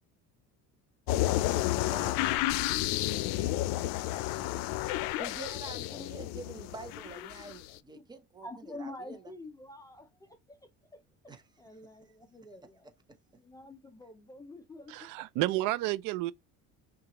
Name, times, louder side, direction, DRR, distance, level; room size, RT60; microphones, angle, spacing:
sound 1, 1.1-7.6, left 16 dB, 80° left, 0.5 m, -31 dB
voice 1, 1.7-2.2 5.2-9.2 11.3-11.4, right 3 dB, 15° right, 0.8 m, -46 dB
voice 2, 8.4-11.0 11.6-12.9 13.4-15.1, left 2 dB, 10° left, 0.5 m, -47 dB
voice 3, 14.9-16.3, right 17 dB, 70° right, 0.5 m, -31 dB
5.9 x 2.4 x 2.9 m
cardioid pair, 155°, 33 cm